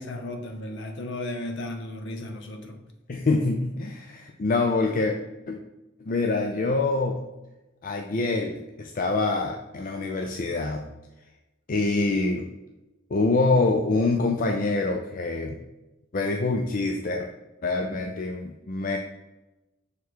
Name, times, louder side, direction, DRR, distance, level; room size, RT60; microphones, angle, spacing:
voice 1, 0.0-2.8, left 1 dB, 60° left, 4 dB, 1.0 m, -35 dB
voice 2, 3.1-5.1 5.5-5.6 6.1-7.2 7.8-10.8 11.7-12.5 13.1-15.6 16.1-17.3 17.6-19.0, left 3 dB, 40° left, 2 dB, 0.5 m, -25 dB
6.6 x 3.5 x 4.6 m, 1.0 s
head